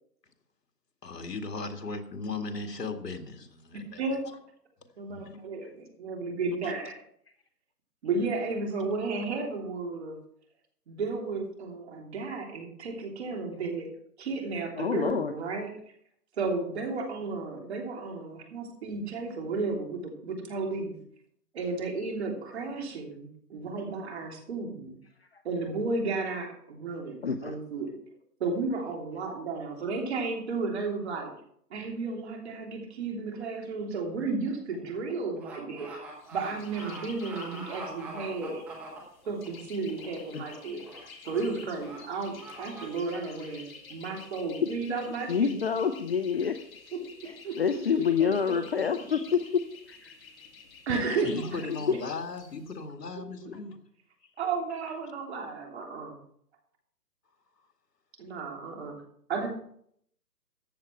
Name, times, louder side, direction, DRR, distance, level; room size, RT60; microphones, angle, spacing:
voice 1, 1.0-4.0 5.1-5.5 6.6-6.7 8.8-8.9 49.1-49.3 50.9-53.8, left 3 dB, 85° left, 2.2 m, -37 dB
voice 2, 5.0-7.0 8.0-10.2 10.9-13.9 14.2-15.7 16.4-21.0 21.5-24.9 25.4-27.9 28.4-31.3 31.7-35.9 36.3-38.6 39.3-40.8 41.3-45.5 47.4-48.5 50.9-51.6 53.4-53.5 54.4-56.2 58.2-58.9 59.3-59.5, right 4 dB, 40° right, 3.2 m, -33 dB
voice 3, 14.8-15.3 27.2-27.6 40.3-40.4 45.3-46.6 47.3-50.1, left 7 dB, 40° left, 0.6 m, -27 dB
sound 1, 33.4-33.6 34.0-39.5 39.9-40.2 40.5-41.0 41.2-41.4 41.8-42.0 42.4-42.9, right 3 dB, 5° right, 0.8 m, -44 dB
sound 2, 36.2-52.8, left 4 dB, 60° left, 2.6 m, -50 dB
14.0 x 8.8 x 4.6 m
hypercardioid pair, 155°, 48 cm